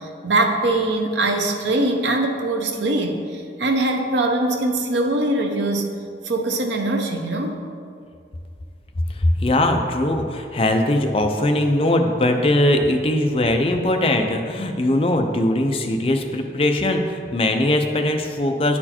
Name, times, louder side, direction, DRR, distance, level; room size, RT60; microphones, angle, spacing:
voice 1, 0.0-5.9 6.2-7.6, right 2 dB, 90° right, 4 dB, 0.8 m, -22 dB
voice 2, 9.2-18.8, left 1 dB, 30° left, 4 dB, 0.5 m, -20 dB
9.9 x 4.4 x 4.3 m, 2.3 s
head